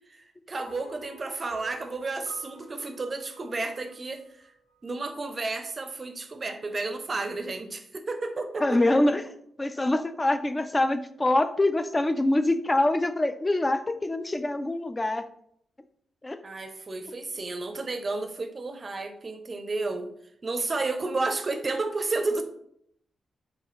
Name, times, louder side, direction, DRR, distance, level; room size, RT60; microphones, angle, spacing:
voice 1, 0.1-4.5 4.8-8.9 16.4-20.1 20.4-22.4, right 3 dB, 30° right, 7 dB, 0.5 m, -32 dB
sound 1, 0.6-5.0, right 3 dB, 65° left, 1.1 m, -48 dB
voice 2, 8.6-9.2 9.6-15.3 16.2-16.4, left 1 dB, 20° left, 11 dB, 0.3 m, -24 dB
4.8 x 3.1 x 3.1 m, 0.70 s
cardioid pair, 110°, 0 cm